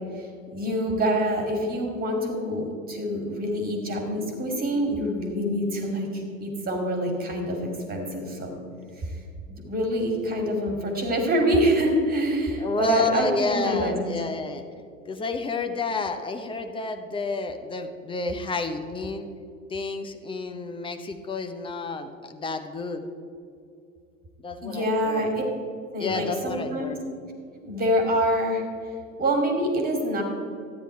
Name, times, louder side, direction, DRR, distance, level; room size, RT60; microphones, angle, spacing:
voice 1, 0.1-8.5 9.0-9.2 9.5-14.0 24.6-25.4 25.9-27.0 27.6-28.6 29.2-30.2, equal, 20° right, 3 dB, 2.4 m, -26 dB
voice 2, 12.6-14.6 15.1-19.3 19.7-23.0 24.4-25.3 26.0-27.0, left 3 dB, 15° left, 6 dB, 0.8 m, -30 dB
12.5 x 9.7 x 4.5 m, 2.4 s
figure-of-eight pair, 80°, 40 cm